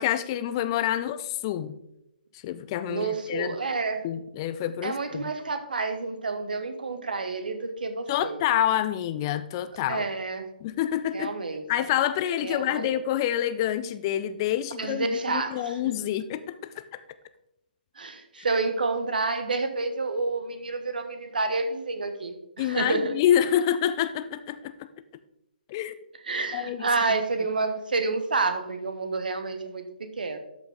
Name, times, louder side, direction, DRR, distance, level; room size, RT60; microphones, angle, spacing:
voice 1, 0.0-1.7 2.4-3.6 4.0-5.3 8.1-10.1 10.6-11.3 11.7-16.8 22.6-24.7 25.7-25.9 26.5-26.9, left 11 dB, 25° left, 12 dB, 0.4 m, -27 dB
voice 2, 2.9-4.1 4.8-8.4 9.9-10.5 11.1-11.6 12.4-12.9 14.8-15.8 18.0-23.1 26.2-29.8 30.2-30.4, right 3 dB, 60° right, 8 dB, 1.1 m, -29 dB
12.5 x 5.2 x 3.6 m, 0.85 s
figure-of-eight pair, 135°, 5 cm